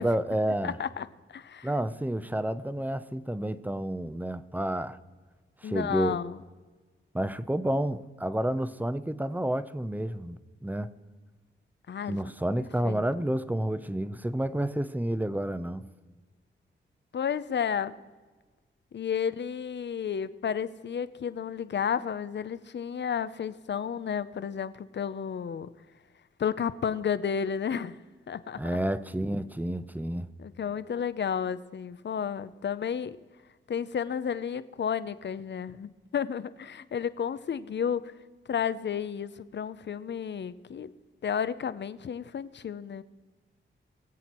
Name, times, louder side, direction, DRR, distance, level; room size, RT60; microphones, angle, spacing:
voice 1, 0.0-0.8 1.6-5.0 5.6-6.2 7.1-10.9 12.1-15.9 28.6-30.3, right 1 dB, 10° right, 0.7 m, -30 dB
voice 2, 0.6-1.7 5.6-6.4 11.9-12.3 12.8-13.0 17.1-17.9 18.9-25.7 26.4-28.0 28.3-28.6 30.4-33.2 33.7-38.1 38.5-40.9 41.2-43.0, left 7 dB, 60° left, 0.7 m, -32 dB
21.5 x 7.9 x 4.5 m
cardioid pair, 65°, 21 cm